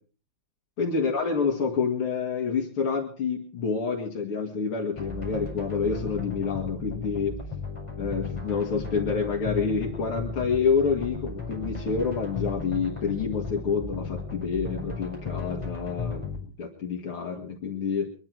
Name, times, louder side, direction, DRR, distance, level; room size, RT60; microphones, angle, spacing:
voice 1, 0.8-7.4 8.0-18.1, left 5 dB, 80° left, -1 dB, 2.9 m, -28 dB
sound 1, 4.9-16.4, left 3 dB, 15° left, 5.2 m, -35 dB
24.0 x 11.0 x 4.6 m, 0.39 s
omnidirectional pair, 2.3 m